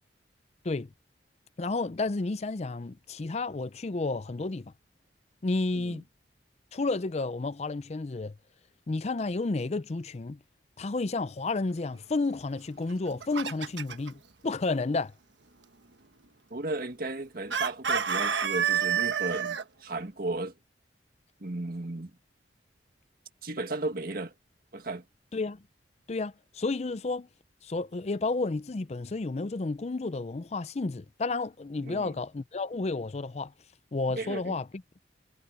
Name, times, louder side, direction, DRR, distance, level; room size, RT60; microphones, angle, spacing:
voice 1, 1.6-4.7 5.4-6.0 6.7-8.3 8.9-10.4 10.8-15.1 25.3-25.6 26.1-27.3 27.6-33.5 33.9-34.8, left 3 dB, 35° left, 0.5 m, -31 dB
Chicken rooster, 12.9-14.1 17.5-19.6, right 7 dB, 80° right, 1.3 m, -28 dB
voice 2, 16.5-20.5 21.4-22.1 23.4-24.3 24.7-25.0 31.8-32.1 34.1-34.6, right 2 dB, 55° right, 1.8 m, -35 dB
head